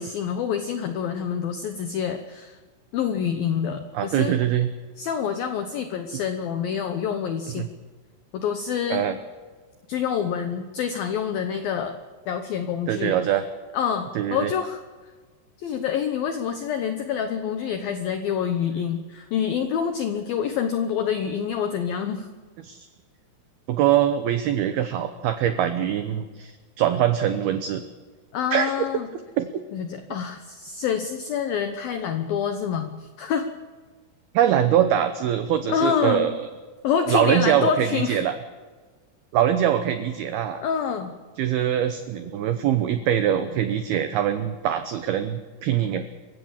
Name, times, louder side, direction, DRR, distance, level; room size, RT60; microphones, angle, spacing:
voice 1, 0.0-2.6 2.9-4.4 5.0-7.7 8.3-9.1 9.9-12.0 12.3-13.2 13.7-14.8 15.6-22.3 28.3-29.1 29.7-33.5 35.7-36.3 36.8-38.2 40.6-41.1, left 7 dB, 80° left, 8 dB, 2.1 m, -27 dB
voice 2, 3.9-4.7 7.6-7.7 8.9-9.2 12.9-13.4 14.2-14.5 22.6-22.9 23.7-27.8 28.5-28.7 29.4-29.5 34.3-36.5 37.1-38.3 39.3-40.6 41.4-46.1, right 10 dB, 90° right, 9 dB, 2.2 m, -23 dB
27.5 x 16.0 x 7.3 m, 1.4 s
omnidirectional pair, 5.8 m